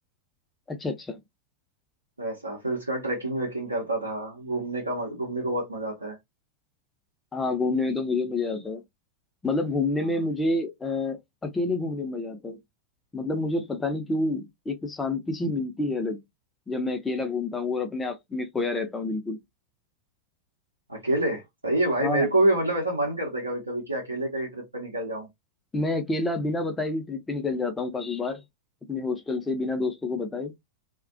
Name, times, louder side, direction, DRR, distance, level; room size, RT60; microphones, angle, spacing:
voice 1, 0.7-1.2 7.3-8.8 9.4-12.6 13.1-16.2 16.7-19.4 22.0-22.3 25.7-28.4 28.9-30.5, left 2 dB, 15° left, 0.6 m, -28 dB
voice 2, 2.2-6.2 20.9-25.3, right 1 dB, 80° right, 0.7 m, -27 dB
2.3 x 2.2 x 2.5 m
figure-of-eight pair, 90°, 0 cm